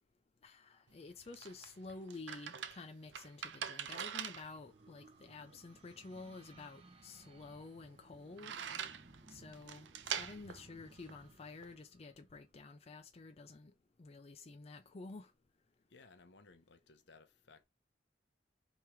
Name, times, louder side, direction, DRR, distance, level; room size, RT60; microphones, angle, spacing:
voice 1, 0.4-8.5 9.3-13.7 14.0-15.3, left 3 dB, 35° left, 0.5 m, -51 dB
sound 1, 0.9-11.7, right 8 dB, 80° right, 0.5 m, -46 dB
sound 2, 4.1-13.0, right 2 dB, 30° right, 0.7 m, -62 dB
voice 2, 15.9-17.6, left 4 dB, 70° left, 0.7 m, -61 dB
3.5 x 3.1 x 4.5 m
head